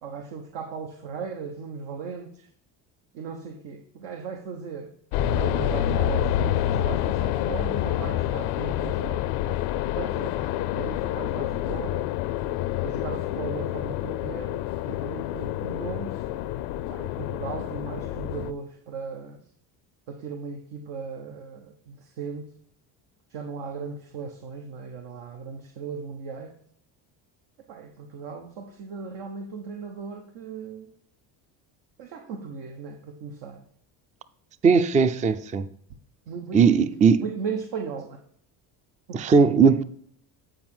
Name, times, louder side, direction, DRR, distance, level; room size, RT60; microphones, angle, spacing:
voice 1, 0.0-2.5 3.1-4.9 5.3-9.3 9.8-12.0 12.8-16.2 16.9-19.4 20.1-22.5 23.3-26.5 27.7-30.9 32.0-33.6 36.3-36.7 37.2-38.2 39.1-39.2, right 5 dB, 75° right, 1.1 m, -37 dB
sound 1, 5.1-18.5, left 12 dB, 90° left, 0.6 m, -28 dB
voice 2, 34.6-35.7 36.5-37.2 39.1-39.8, right 5 dB, 20° right, 0.3 m, -18 dB
9.3 x 5.0 x 4.3 m
cardioid pair, 100°, 45 cm